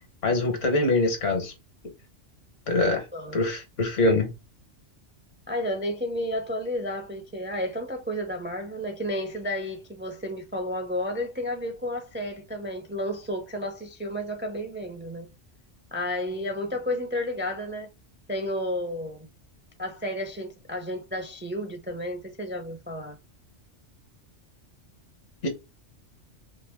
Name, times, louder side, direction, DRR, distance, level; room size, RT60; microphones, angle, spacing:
voice 1, 0.2-1.5 2.7-3.0 3.3-4.3 25.4-25.5, left 2 dB, 80° left, 1.6 m, -23 dB
voice 2, 3.1-3.4 5.5-15.3 15.9-17.9 18.3-19.2 19.8-23.1, left 1 dB, 15° right, 0.4 m, -32 dB
3.3 x 3.0 x 3.4 m
omnidirectional pair, 1.3 m